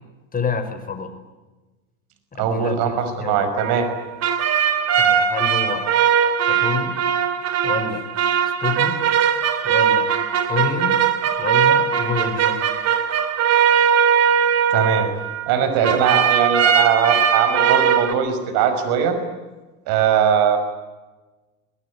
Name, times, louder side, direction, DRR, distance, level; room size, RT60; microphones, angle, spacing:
voice 1, 0.3-1.1 2.3-3.5 5.0-5.9 6.5-7.0 7.6-8.0 8.6-9.0 9.6-10.1 10.5-11.0 11.4-12.6, left 5 dB, 20° left, 7 dB, 5.4 m, -27 dB
voice 2, 2.4-3.9 14.7-15.1 15.5-19.2 19.9-20.6, right 7 dB, 60° right, 9 dB, 5.8 m, -20 dB
sound 1, 3.6-15.6 15.8-18.1, right 8 dB, 35° right, 2.8 m, -19 dB
23.5 x 21.5 x 9.7 m, 1.2 s
supercardioid pair, 105°, 42 cm